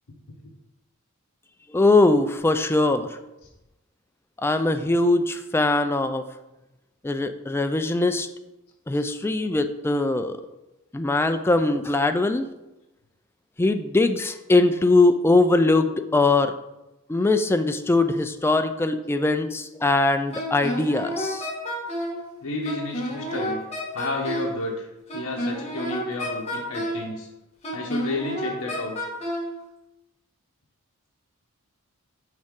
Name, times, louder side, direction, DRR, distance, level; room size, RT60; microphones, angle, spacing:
voice 1, 1.7-3.2 4.4-6.2 7.0-8.3 8.9-10.4 10.9-12.5 13.6-16.5 17.1-21.5, left 2 dB, 10° left, 8 dB, 0.3 m, -21 dB
Wind instrument woodwind instrument, 20.3-22.2 22.6-24.6 25.1-27.1 27.6-29.5, equal, 30° left, 1.8 m, -30 dB
voice 2, 22.4-23.6 23.9-24.9 25.1-27.3 27.7-29.1, left 2 dB, 75° left, -3 dB, 1.0 m, -31 dB
6.4 x 4.8 x 3.7 m, 0.97 s
head